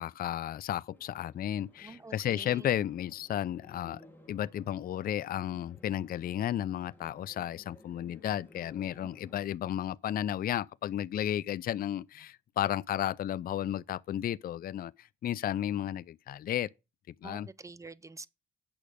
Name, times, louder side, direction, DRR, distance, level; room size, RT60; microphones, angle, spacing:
voice 1, 0.0-4.0 4.3-16.7 17.2-17.5, left 11 dB, 50° left, 0.4 m, -33 dB
sound 1, 0.9-9.4, left 1 dB, 10° left, 3.6 m, -58 dB
voice 2, 1.8-2.7 17.2-18.3, right 3 dB, 15° right, 0.7 m, -47 dB
8.8 x 6.1 x 5.0 m
cardioid pair, 90°, 20 cm